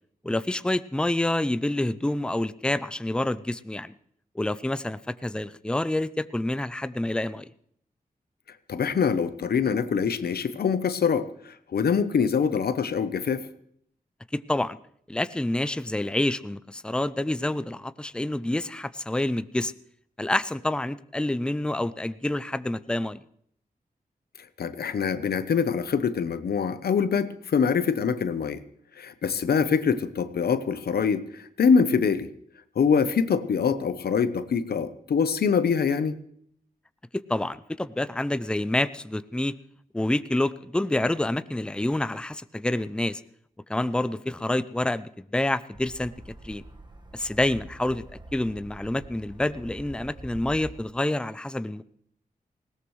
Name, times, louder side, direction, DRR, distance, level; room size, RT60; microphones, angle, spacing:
voice 1, 0.2-3.9 4.4-7.5 14.3-14.8 15.1-19.7 20.2-23.2 37.3-39.6 39.9-43.2 43.7-46.1 46.4-46.6 47.1-48.0 48.3-51.8, left 1 dB, 5° left, 14 dB, 0.5 m, -27 dB
voice 2, 8.7-13.4 24.6-28.6 29.0-32.3 32.8-36.2, left 6 dB, 85° left, 12 dB, 0.8 m, -24 dB
sound 1, 45.7-50.8, right 1 dB, 30° right, 1.5 m, -45 dB
19.5 x 17.5 x 3.2 m, 0.66 s
cardioid pair, 70°, 16 cm